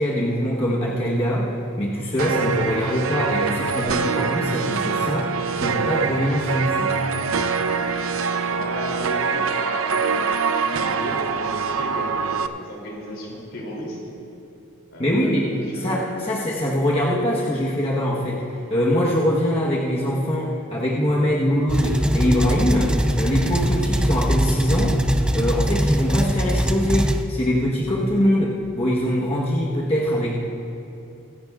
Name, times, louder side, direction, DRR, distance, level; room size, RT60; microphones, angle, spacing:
voice 1, 0.0-1.5 1.8-5.3 5.6-6.9 15.0-25.0 25.3-30.3, equal, 25° left, -5 dB, 1.1 m, -23 dB
sound 1, 2.2-12.5, right 5 dB, 75° right, 0.6 m, -24 dB
voice 2, 8.5-14.0 14.9-16.2, left 1 dB, 65° left, -3 dB, 2.9 m, -35 dB
sound 2, 21.7-27.2, equal, 5° right, 0.4 m, -22 dB
25.0 x 10.5 x 2.4 m, 2.9 s
head